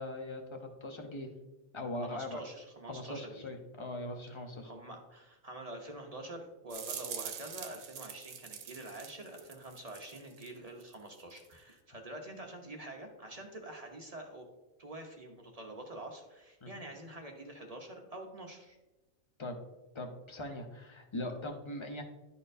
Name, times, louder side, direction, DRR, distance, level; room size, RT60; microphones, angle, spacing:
voice 1, 0.0-1.3 1.7-2.4 2.9-4.7 16.6-16.8 19.4-19.6 19.9-22.0, left 1 dB, 30° left, 3 dB, 0.5 m, -40 dB
voice 2, 2.0-3.5 4.6-14.5 14.8-18.8, right 1 dB, 35° right, 2 dB, 0.6 m, -46 dB
sound 1, 6.7-10.5 10.8-11.6, right 8 dB, 75° right, 1.1 m, -44 dB
11.5 x 4.3 x 2.6 m, 1.1 s
omnidirectional pair, 1.5 m